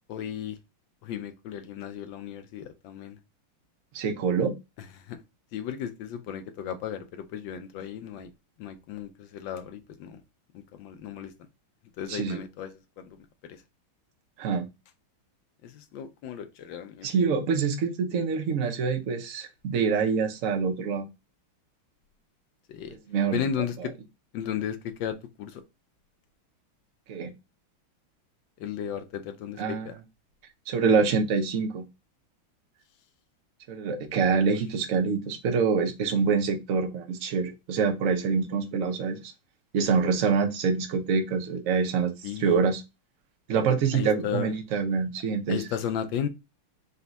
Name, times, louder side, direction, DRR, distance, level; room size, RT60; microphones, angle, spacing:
voice 1, 0.1-0.6 1.0-3.2 5.1-5.2 5.5-8.3 8.6-10.2 10.5-11.3 12.0-12.7 13.0-13.2 13.4-13.6 15.6-17.1 22.7-23.0 23.3-23.9 24.3-25.6 28.6-30.0 34.4-34.5 42.2-42.6 43.9-44.5 45.5-46.3, left 9 dB, 70° left, 1.3 m, -34 dB
voice 2, 3.9-4.5 12.1-12.4 14.4-14.7 17.0-21.0 22.9-23.9 27.1-27.3 29.6-30.0 30.7-31.9 33.7-39.3 39.7-42.8 43.5-45.6, right 5 dB, 60° right, 0.9 m, -26 dB
4.1 x 2.3 x 3.9 m
omnidirectional pair, 2.3 m